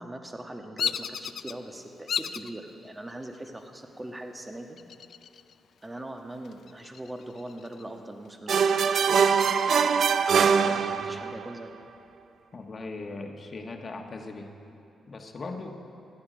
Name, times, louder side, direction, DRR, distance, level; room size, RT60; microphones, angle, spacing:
voice 1, 0.0-4.8 5.8-8.5 10.6-11.7, right 1 dB, 20° right, 4 dB, 1.4 m, -41 dB
Bird vocalization bird call bird song, 0.8-1.5 2.1-2.5 3.1-3.6 4.8-5.5 5.9-6.0 6.4-7.9, left 8 dB, 70° left, 0.4 m, -33 dB
sound 1, 8.5-11.4, right 6 dB, 65° right, 0.4 m, -22 dB
voice 2, 10.7-11.1 12.5-14.5 15.1-15.8, left 3 dB, 45° left, 4 dB, 1.4 m, -39 dB
15.0 x 10.5 x 5.1 m, 2.7 s
supercardioid pair, 55°, 0 cm